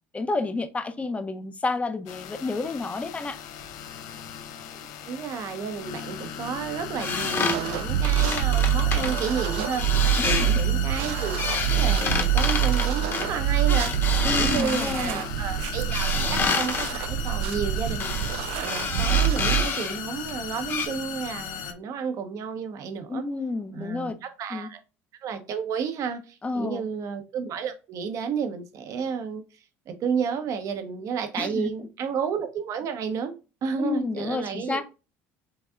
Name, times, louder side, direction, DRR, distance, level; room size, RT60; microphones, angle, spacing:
voice 1, 0.1-3.4 10.2-10.6 14.2-15.2 23.1-24.2 24.5-24.7 26.4-26.8 31.4-31.7 33.8-34.8, left 3 dB, 20° left, 0.8 m, -30 dB
sound 1, 2.1-21.7, left 8 dB, 70° left, 0.7 m, -37 dB
voice 2, 4.7-18.1 18.6-23.2 23.7-24.8 25.2-29.4 29.9-33.3 33.6-34.8, right 6 dB, 55° right, 1.0 m, -31 dB
sound 2, 7.0-9.3 9.7-10.7 11.0-15.3 15.9-16.9 18.0-18.4 18.6-20.0 20.3-20.4 20.7-20.9, left 4 dB, 35° left, 1.2 m, -28 dB
sound 3, 7.5-19.6, right 11 dB, 75° right, 0.4 m, -25 dB
5.3 x 3.4 x 2.4 m
hypercardioid pair, 80°, 7 cm